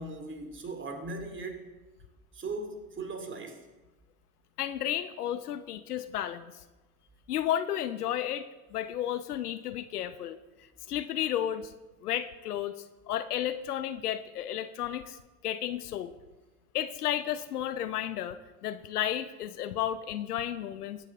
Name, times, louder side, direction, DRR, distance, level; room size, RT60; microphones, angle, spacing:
voice 1, 0.0-1.7 2.3-3.6, right 3 dB, 25° right, 6 dB, 2.4 m, -38 dB
voice 2, 4.6-6.5 7.3-10.4 10.9-11.7 12.0-12.8 13.1-15.2 15.4-16.1 16.7-21.0, left 11 dB, 75° left, 12 dB, 0.8 m, -32 dB
22.0 x 9.2 x 4.0 m, 1.1 s
figure-of-eight pair, 75°, 45 cm